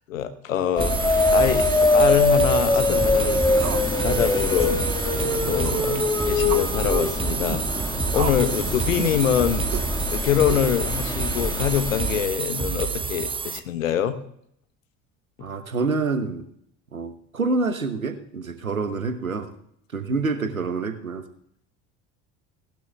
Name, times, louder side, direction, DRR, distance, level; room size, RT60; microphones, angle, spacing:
voice 1, 0.1-4.7 5.1-9.7 10.1-14.2, left 9 dB, 75° left, 11 dB, 1.2 m, -25 dB
sound 1, 0.8-12.3, left 2 dB, 10° left, 2.0 m, -23 dB
sound 2, 0.8-13.6, right 5 dB, 15° right, 0.6 m, -29 dB
sound 3, 2.7-3.0 3.6-3.9 4.1-4.2 4.6-4.8 5.6-5.9 6.5-6.7 7.4-7.6 8.1-8.5 9.0-9.2 9.7-9.9 10.5-10.9, right 12 dB, 45° right, 1.0 m, -33 dB
voice 2, 15.4-16.5 16.9-19.5 19.9-21.2, right 3 dB, 90° right, 9 dB, 1.1 m, -27 dB
19.0 x 12.0 x 2.4 m, 0.70 s
figure-of-eight pair, 65°, 40 cm